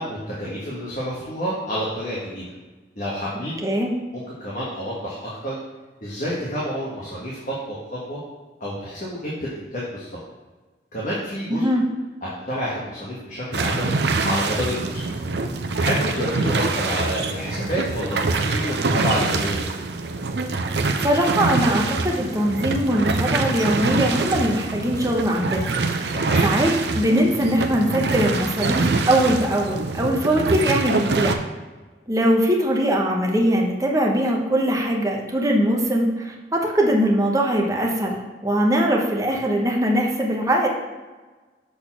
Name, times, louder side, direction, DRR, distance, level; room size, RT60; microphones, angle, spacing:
voice 1, 0.0-2.4 3.0-3.6 4.1-5.6 6.0-8.2 8.6-10.2 10.9-11.7 12.2-13.9 14.2-15.1 15.8-19.6 26.1-26.4, equal, 45° left, -6 dB, 1.5 m, -28 dB
voice 2, 11.5-11.8 21.0-25.7 26.0-31.4 32.1-40.7, equal, 20° right, 0 dB, 1.0 m, -21 dB
sound 1, 13.5-31.4, right 3 dB, 65° right, 0.6 m, -25 dB
6.8 x 4.3 x 6.0 m, 1.3 s
head